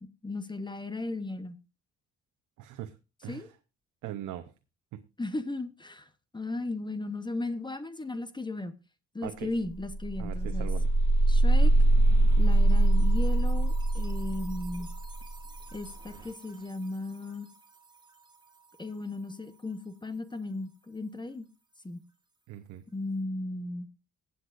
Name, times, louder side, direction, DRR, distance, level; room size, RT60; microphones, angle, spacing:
voice 1, 0.0-1.6 3.3-3.5 5.2-8.8 9.1-10.7 11.3-11.7 12.4-14.9 15.7-17.5 18.8-21.5 21.8-22.0 22.9-23.9, left 2 dB, 15° left, 1.0 m, -36 dB
voice 2, 2.6-2.9 3.2-3.5 4.0-4.5 4.9-5.0 9.2-9.5 10.2-10.9 22.5-22.8, right 12 dB, 80° right, 0.8 m, -40 dB
sound 1, 9.2-9.3 9.6-16.4, right 2 dB, 15° right, 1.9 m, -24 dB
21.5 x 8.1 x 2.5 m
cardioid pair, 90°, 30 cm